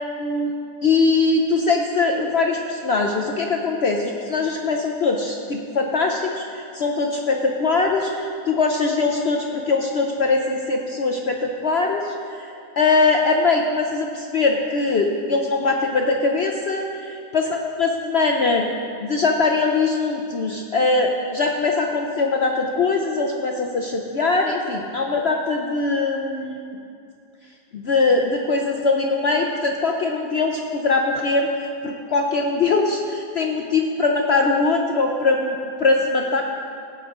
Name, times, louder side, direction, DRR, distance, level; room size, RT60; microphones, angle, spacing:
voice 1, 0.2-0.5 0.8-16.9 17.3-18.7 19.0-26.6 27.7-31.5 31.8-36.4, left 3 dB, 80° left, 2 dB, 0.5 m, -21 dB
16.0 x 8.8 x 3.7 m, 2.5 s
omnidirectional pair, 1.9 m